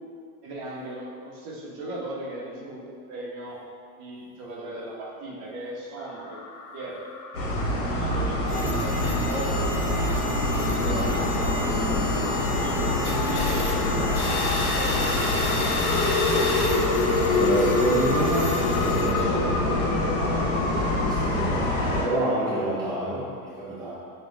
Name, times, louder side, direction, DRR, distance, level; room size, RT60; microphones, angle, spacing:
voice 1, 0.4-3.6 4.0-6.4 6.7-7.0 7.3-9.9 10.5-12.2 12.5-12.8 13.1-15.3 15.7-16.5 16.7-17.3, right 2 dB, 45° right, -3 dB, 1.0 m, -37 dB
sound 1, 6.0-21.1, left 3 dB, 60° left, 0.6 m, -30 dB
sound 2, 7.3-22.0, left 1 dB, 75° left, 1.3 m, -26 dB
voice 2, 8.2-8.8 10.5-11.1 17.3-23.9, right 1 dB, 10° right, -9 dB, 0.6 m, -29 dB
sound 3, 8.5-19.1, left 1 dB, 25° left, 1.3 m, -32 dB
5.1 x 2.5 x 3.7 m, 2.3 s
supercardioid pair, 140°, 44 cm